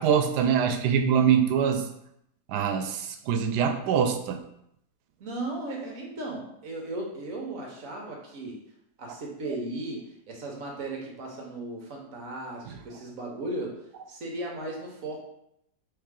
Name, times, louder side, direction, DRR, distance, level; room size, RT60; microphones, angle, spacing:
voice 1, 0.0-1.8 2.5-4.4, right 7 dB, 85° right, 7 dB, 1.1 m, -24 dB
voice 2, 5.2-8.6 9.0-15.2, right 2 dB, 60° right, -1 dB, 1.2 m, -36 dB
4.5 x 3.3 x 3.6 m, 0.77 s
omnidirectional pair, 1.7 m